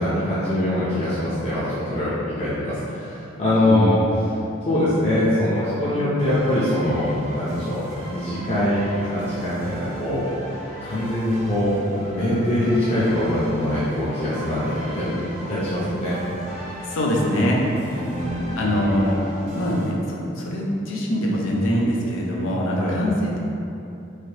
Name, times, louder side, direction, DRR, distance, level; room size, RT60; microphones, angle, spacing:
voice 1, 0.0-4.0 4.7-7.0 7.3-10.3 10.8-11.8 12.1-16.2 17.9-18.6 22.7-23.0, left 1 dB, 35° left, -11 dB, 0.6 m, -23 dB
voice 2, 3.6-4.1 16.8-17.6 17.9-18.1 18.6-19.2 19.5-23.4, equal, 90° left, -3 dB, 0.5 m, -23 dB
sound 1, 6.2-19.9, equal, 35° right, 0.5 m, -37 dB
3.3 x 2.6 x 2.8 m, 2.7 s
head